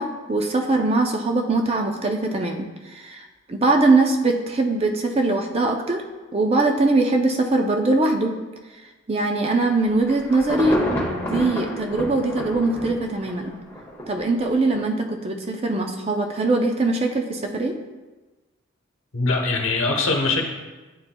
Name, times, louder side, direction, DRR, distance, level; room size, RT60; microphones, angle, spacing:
voice 1, 0.0-6.0 6.3-8.3 9.1-10.8 11.1-13.6 14.1-17.8, right 2 dB, 30° right, 3 dB, 0.4 m, -22 dB
Insect / Thunder / Rain, 9.9-14.2 14.7-14.8, equal, 10° left, 1.1 m, -29 dB
voice 2, 19.1-20.5, left 3 dB, 75° left, 2 dB, 0.9 m, -22 dB
9.9 x 4.3 x 2.2 m, 1.2 s
head